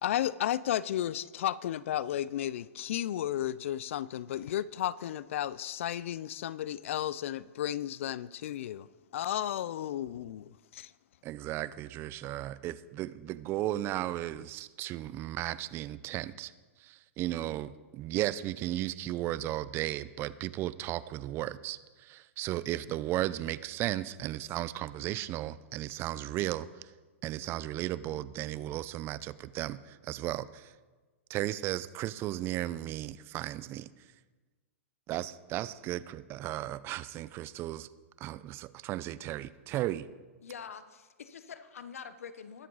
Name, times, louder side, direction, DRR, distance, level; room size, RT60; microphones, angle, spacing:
voice 1, 0.0-8.9 9.1-10.9, left 12 dB, 65° left, 0.5 m, -33 dB
voice 2, 11.2-16.5 16.8-26.9 27.2-30.7 31.3-33.9 35.1-37.9 38.2-40.1, right 14 dB, 30° right, 0.5 m, -35 dB
voice 3, 40.4-42.7, left 7 dB, 80° left, 1.0 m, -45 dB
21.0 x 7.5 x 4.0 m
hypercardioid pair, 125°, 7 cm